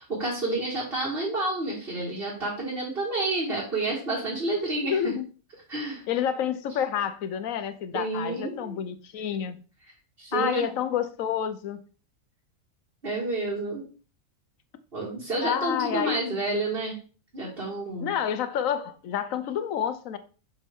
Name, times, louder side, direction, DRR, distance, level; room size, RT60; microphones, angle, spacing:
voice 1, 0.1-5.0 5.7-6.0 7.9-8.8 10.2-10.7 13.0-13.8 14.9-17.0 17.3-18.1, right 2 dB, 40° right, 2.4 m, -29 dB
voice 2, 4.8-5.3 6.1-9.6 10.3-11.8 15.4-16.2 18.0-20.2, left 9 dB, 75° left, 1.1 m, -29 dB
6.3 x 5.4 x 3.6 m
omnidirectional pair, 1.5 m